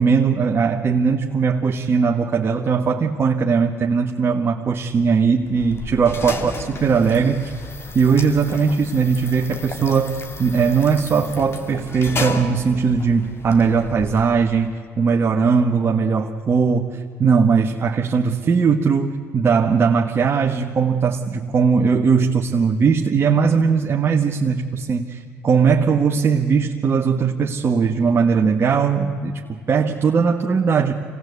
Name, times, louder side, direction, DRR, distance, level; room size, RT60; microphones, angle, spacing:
voice 1, 0.0-7.5 7.9-30.9, right 5 dB, 45° right, 1 dB, 1.4 m, -19 dB
sound 1, 5.4-14.7, left 3 dB, 45° left, 2.7 m, -33 dB
25.0 x 18.5 x 8.2 m, 2.3 s
supercardioid pair, 70°, 6 cm